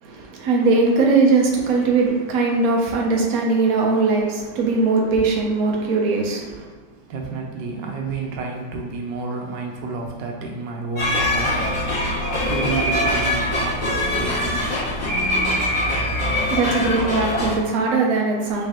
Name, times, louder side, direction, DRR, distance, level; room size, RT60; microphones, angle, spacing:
voice 1, 0.0-6.7 16.5-18.7, right 3 dB, 60° right, -1 dB, 1.2 m, -20 dB
voice 2, 6.7-15.0, right 3 dB, 90° right, 0 dB, 1.4 m, -31 dB
sound 1, 11.0-17.5, left 1 dB, 30° left, 1.1 m, -23 dB
5.2 x 3.4 x 2.9 m, 1.4 s
omnidirectional pair, 1.9 m